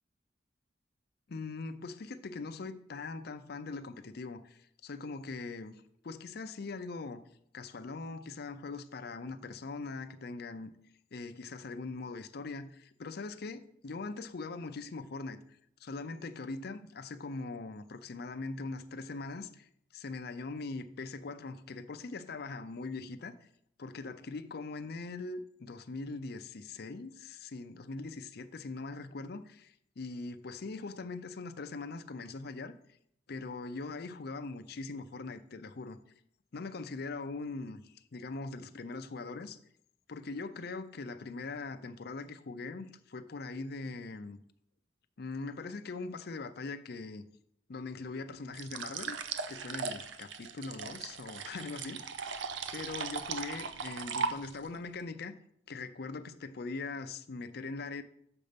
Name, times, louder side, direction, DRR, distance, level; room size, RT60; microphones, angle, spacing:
voice 1, 1.3-7.2 7.5-10.7 11.1-15.4 15.8-23.3 23.8-32.7 33.3-36.0 36.5-39.6 40.1-44.4 45.2-47.2 47.7-49.2 49.5-52.0 52.7-55.3 55.7-58.0, left 3 dB, 60° left, 0.5 m, -41 dB
sound 1, 48.5-54.8, right 5 dB, 90° right, 0.6 m, -38 dB
6.8 x 5.3 x 5.1 m
head